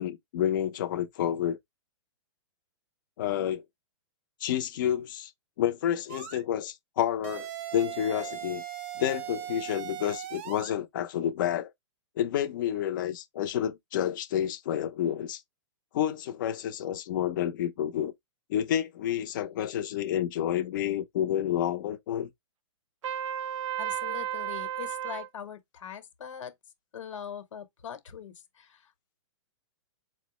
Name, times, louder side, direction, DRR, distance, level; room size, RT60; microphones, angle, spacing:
voice 1, 0.0-1.6 3.2-3.6 4.4-5.3 5.6-8.6 9.0-11.7 12.2-15.4 15.9-18.1 18.5-22.3, left 10 dB, 40° left, 0.6 m, -29 dB
sound 1, 6.1-6.4 7.2-10.8, right 12 dB, 25° right, 0.4 m, -39 dB
Trumpet, 23.0-25.3, right 11 dB, 85° right, 0.6 m, -33 dB
voice 2, 23.8-26.5 26.9-28.9, left 8 dB, 90° left, 1.0 m, -41 dB
4.5 x 2.0 x 2.9 m
hypercardioid pair, 165°, 16 cm